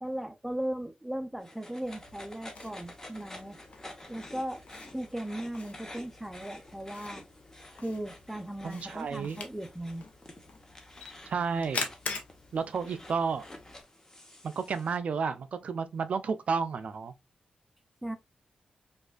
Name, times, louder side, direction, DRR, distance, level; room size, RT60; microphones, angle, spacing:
voice 1, 0.0-3.6 4.1-4.6 4.9-7.3 7.8-10.0 18.0-18.2, right 1 dB, 5° right, 0.5 m, -37 dB
sound 1, 1.4-15.0, left 1 dB, 20° left, 0.9 m, -50 dB
Camera, 1.8-13.8, left 4 dB, 70° left, 0.8 m, -44 dB
voice 2, 8.6-9.4 11.3-11.9 12.5-13.4 14.4-17.1, right 5 dB, 65° right, 0.3 m, -31 dB
4.8 x 2.4 x 2.2 m
cardioid pair, 75°, 2 cm